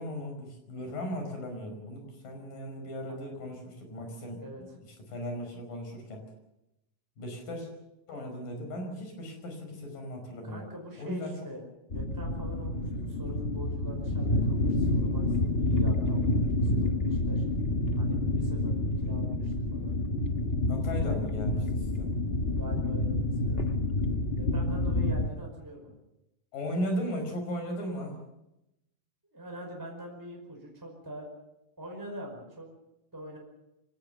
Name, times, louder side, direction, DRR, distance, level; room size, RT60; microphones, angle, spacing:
voice 1, 0.0-4.7 5.1-6.2 7.2-7.7 8.1-10.7 11.0-11.3 20.7-22.1 26.5-28.2, equal, 80° left, 5 dB, 6.9 m, -37 dB
voice 2, 10.4-11.7 11.9-17.4 18.0-20.0 22.6-23.7 24.4-26.0 29.3-31.3 31.8-32.7 33.1-33.4, equal, 5° right, 0 dB, 5.1 m, -44 dB
sound 1, 11.9-25.3, left 1 dB, 60° left, 0.6 m, -28 dB
24.5 x 18.5 x 6.9 m, 0.87 s
omnidirectional pair, 3.8 m